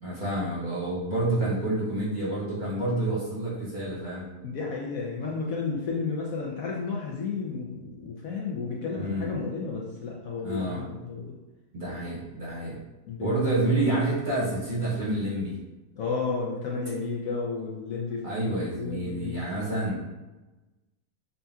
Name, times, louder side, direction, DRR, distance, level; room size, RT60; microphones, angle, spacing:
voice 1, 0.0-4.3 8.9-9.3 10.4-10.8 11.7-12.8 13.2-15.6 18.2-20.0, right 2 dB, 35° right, -8 dB, 1.0 m, -28 dB
voice 2, 4.4-11.4 13.1-13.6 16.0-18.5 18.7-19.9, left 4 dB, 65° left, -3 dB, 0.9 m, -32 dB
5.5 x 2.7 x 2.3 m, 1.1 s
omnidirectional pair, 1.8 m